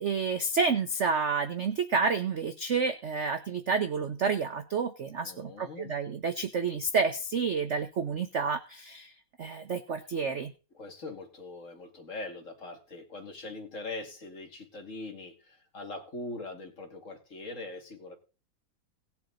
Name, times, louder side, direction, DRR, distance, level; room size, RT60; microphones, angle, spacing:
voice 1, 0.0-9.1 9.4-10.5, right 5 dB, 60° right, 9 dB, 0.7 m, -29 dB
voice 2, 5.2-5.9 10.7-18.2, left 2 dB, 40° left, 4 dB, 2.4 m, -42 dB
18.5 x 7.3 x 3.8 m, 0.33 s
omnidirectional pair, 2.2 m